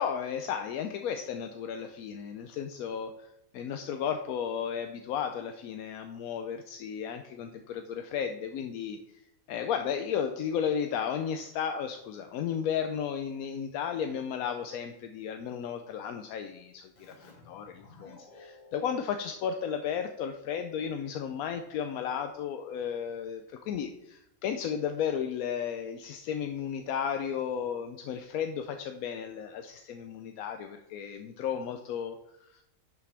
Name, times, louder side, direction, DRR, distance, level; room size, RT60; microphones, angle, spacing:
voice 1, 0.0-9.0 9.5-32.6, left 8 dB, 85° left, 6 dB, 1.0 m, -34 dB
Keyboard (musical), 16.9-20.3, left 3 dB, 35° left, 1.2 m, -56 dB
11.0 x 5.8 x 3.4 m, 0.84 s
omnidirectional pair, 1.5 m